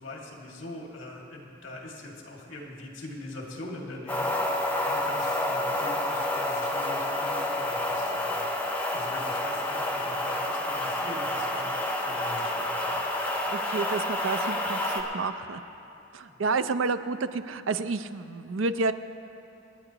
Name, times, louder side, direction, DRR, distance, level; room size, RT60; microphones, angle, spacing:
voice 1, 0.0-4.5 4.8-8.5 8.9-11.7 12.0-13.1 16.3-16.4, left 1 dB, 80° left, -1 dB, 2.1 m, -42 dB
sound 1, 4.1-15.0, left 1 dB, 10° left, 1.1 m, -29 dB
voice 2, 13.5-15.6 16.1-18.9, right 4 dB, 90° right, 11 dB, 0.5 m, -30 dB
27.0 x 9.8 x 3.0 m, 2.8 s
head